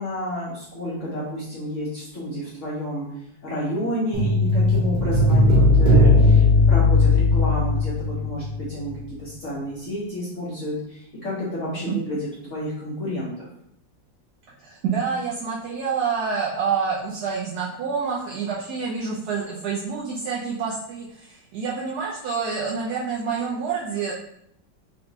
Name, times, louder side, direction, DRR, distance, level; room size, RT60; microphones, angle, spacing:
voice 1, 0.0-3.1 3.4-8.9 9.2-13.5, equal, 60° left, -7 dB, 0.8 m, -30 dB
sound 1, 4.1-8.6 8.8-9.0, left 2 dB, 90° right, 1.6 m, -17 dB
voice 2, 14.6-24.1, right 5 dB, 70° right, -5 dB, 0.9 m, -27 dB
3.9 x 2.2 x 2.6 m, 0.73 s
omnidirectional pair, 2.1 m